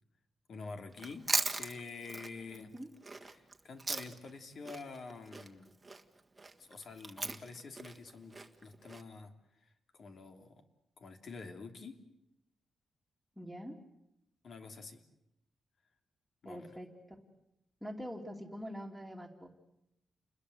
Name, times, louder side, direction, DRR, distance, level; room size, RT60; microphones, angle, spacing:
voice 1, 0.5-1.2 1.5-2.7 3.2-5.7 6.6-8.3 8.6-9.3 9.6-10.6 11.0-12.0 14.4-15.0 16.4-16.7, left 4 dB, 55° left, 6 dB, 3.1 m, -47 dB
Chewing mastication, 0.9-4.4 4.7-9.0, right 3 dB, 20° right, 1.6 m, -38 dB
voice 2, 2.5-2.9 13.4-13.8 16.4-17.2 17.8-19.5, equal, ahead, -4 dB, 2.9 m, -44 dB
29.5 x 21.0 x 8.0 m, 0.85 s
wide cardioid pair, 135°, 0 cm